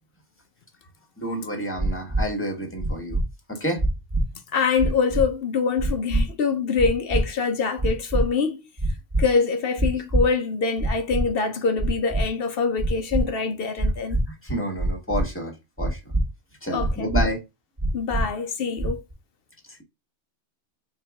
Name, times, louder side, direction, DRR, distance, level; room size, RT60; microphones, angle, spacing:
voice 1, 1.2-3.2 3.5-3.8 14.3-16.0 16.6-17.4 19.7-19.8, equal, 10° left, 1.4 m, -29 dB
sound 1, 1.8-2.2 2.8-3.2 3.8-4.2 4.8-5.2 5.8-6.2 6.8-7.2 7.8-8.2 8.8-9.2 9.8-10.2 10.8-11.2 11.8-12.2 12.8-13.2 13.8-14.2 14.8-15.2 15.8-16.2 16.8-17.2 17.8-18.2 18.8-19.1, right 1 dB, 20° right, 1.2 m, -23 dB
voice 2, 4.5-8.6 9.2-14.2 16.7-17.1 17.9-19.0, left 5 dB, 60° left, 0.7 m, -24 dB
4.5 x 2.8 x 3.4 m
omnidirectional pair, 1.3 m